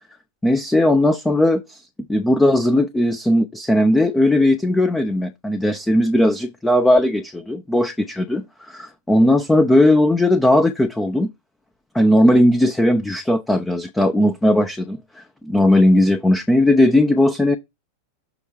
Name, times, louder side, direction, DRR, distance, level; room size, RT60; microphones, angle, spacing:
voice 1, 0.4-1.8 2.1-11.3 11.9-17.6, left 1 dB, 5° left, 0.7 m, -17 dB
7.2 x 3.3 x 4.7 m
figure-of-eight pair, 90°, 0 cm